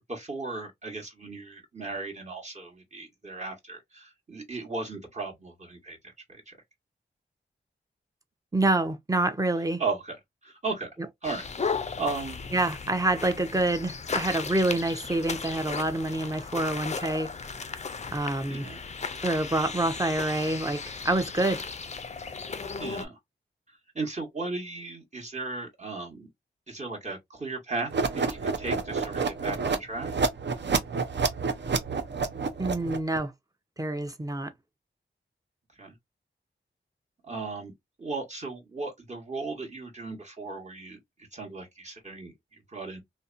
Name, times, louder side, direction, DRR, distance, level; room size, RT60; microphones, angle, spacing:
voice 1, 0.0-6.0 6.3-6.6 9.8-10.9 11.2-11.5 12.0-12.4 18.5-18.8 22.5-23.2 23.9-26.3 26.7-30.1 35.8-35.9 37.2-37.7 38.0-41.0 41.3-43.0, right 3 dB, 35° right, 1.2 m, -36 dB
voice 2, 8.5-9.8 12.5-17.3 18.1-18.7 19.2-21.6 32.6-33.3 33.8-34.5, right 2 dB, 15° right, 0.6 m, -27 dB
sound 1, 11.2-23.1, left 5 dB, 35° left, 0.4 m, -36 dB
sound 2, 27.9-33.2, right 4 dB, 60° right, 0.6 m, -28 dB
2.6 x 2.1 x 2.4 m
cardioid pair, 50°, 21 cm